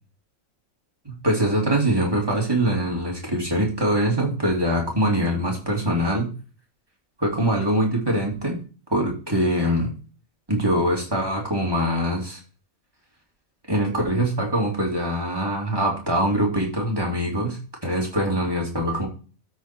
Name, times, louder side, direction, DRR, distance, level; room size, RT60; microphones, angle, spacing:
voice 1, 1.0-6.3 7.2-8.6 8.9-9.9 10.5-12.4 13.7-19.1, right 1 dB, 15° right, -1 dB, 2.7 m, -23 dB
12.5 x 4.8 x 4.5 m, 0.37 s
omnidirectional pair, 1.5 m